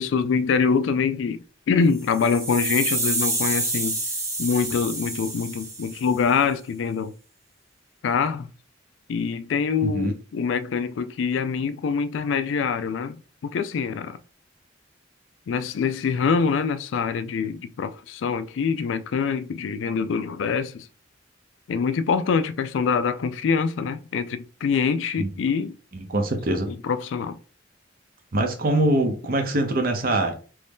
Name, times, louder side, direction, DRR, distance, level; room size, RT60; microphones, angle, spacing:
voice 1, 0.0-4.0 4.4-7.1 8.0-8.5 9.1-14.2 15.5-20.9 21.7-25.8 26.7-27.4, left 5 dB, 75° left, 0.3 m, -25 dB
sound 1, 2.0-6.2, right 2 dB, 15° right, 0.9 m, -28 dB
voice 2, 25.9-26.7 28.3-30.3, right 1 dB, 50° right, 0.7 m, -23 dB
3.1 x 2.6 x 3.5 m
head